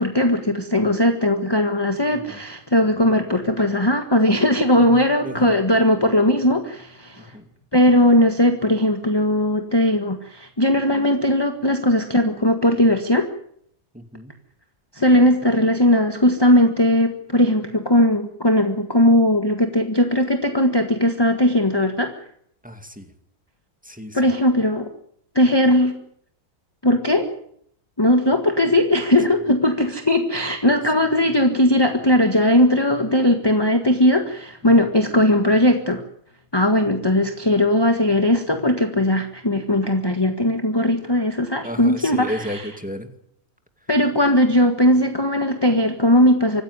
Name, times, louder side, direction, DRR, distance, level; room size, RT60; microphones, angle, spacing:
voice 1, 0.0-7.3 7.7-13.3 14.9-22.1 24.1-24.9 25.3-25.9 26.8-27.3 28.0-36.0 36.5-42.6 43.9-46.6, left 1 dB, 15° left, 6 dB, 1.6 m, -18 dB
voice 2, 4.8-5.5 7.2-7.5 13.9-14.4 22.6-23.1 23.8-24.3 41.6-43.1, equal, 5° right, 6 dB, 2.2 m, -33 dB
25.5 x 15.5 x 9.9 m, 0.70 s
omnidirectional pair, 1.8 m